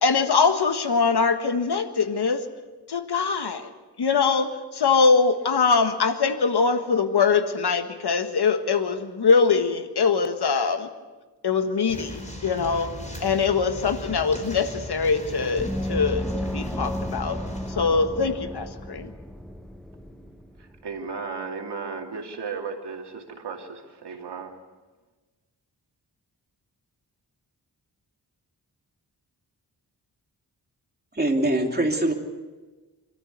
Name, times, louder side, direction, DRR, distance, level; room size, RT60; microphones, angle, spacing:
voice 1, 0.0-2.4 2.9-3.7 4.0-10.9 11.4-12.9 13.2-17.4 17.7-19.1, left 5 dB, 75° left, 8 dB, 1.6 m, -22 dB
sound 1, 11.8-17.7, equal, 20° left, 5.0 m, -37 dB
Gong, 15.6-20.8, equal, ahead, 1.2 m, -33 dB
voice 2, 20.6-24.5, right 5 dB, 85° right, 2 dB, 2.7 m, -35 dB
voice 3, 31.1-32.1, right 1 dB, 25° right, 2 dB, 3.0 m, -23 dB
25.5 x 13.5 x 8.2 m, 1.3 s
wide cardioid pair, 75°, 40 cm